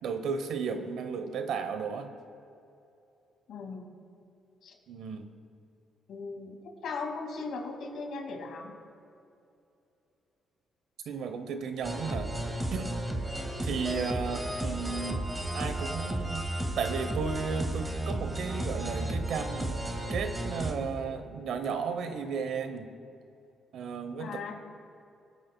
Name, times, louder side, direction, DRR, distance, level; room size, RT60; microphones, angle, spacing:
voice 1, 0.0-2.1 4.9-5.3 11.1-12.3 12.7-12.9 13.6-15.3 15.5-16.5 16.8-19.7 20.1-22.9 23.7-24.5, right 5 dB, 75° right, 8 dB, 0.9 m, -34 dB
voice 2, 3.5-4.1 4.6-4.8 6.1-6.6 6.8-8.7 16.1-16.2 24.2-24.5, left 4 dB, 70° left, 1 dB, 2.2 m, -38 dB
sound 1, 11.8-20.7, right 1 dB, 15° right, 1.8 m, -33 dB
25.0 x 8.5 x 2.3 m, 2.7 s
cardioid pair, 90°, 0 cm